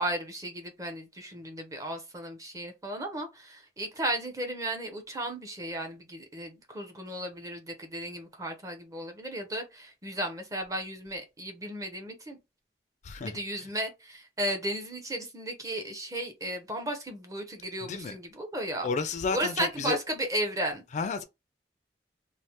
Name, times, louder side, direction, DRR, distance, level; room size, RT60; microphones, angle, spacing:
voice 1, 0.0-12.4 13.2-18.9 19.3-20.8, right 1 dB, 20° right, 0.6 m, -34 dB
voice 2, 17.8-18.2 18.8-20.0 20.9-21.2, left 4 dB, 40° left, 0.3 m, -31 dB
3.1 x 2.0 x 2.8 m
head